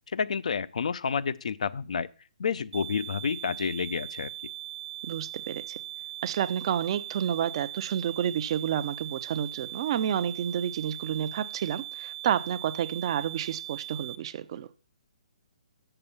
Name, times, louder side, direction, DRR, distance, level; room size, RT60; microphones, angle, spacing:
voice 1, 0.1-2.1 2.4-4.3, left 6 dB, 65° left, 0.5 m, -29 dB
sound 1, 2.7-14.2, right 13 dB, 70° right, 1.0 m, -40 dB
voice 2, 5.1-5.6 6.2-14.7, right 9 dB, 45° right, 0.6 m, -30 dB
6.8 x 6.7 x 7.2 m
figure-of-eight pair, 135°, 4 cm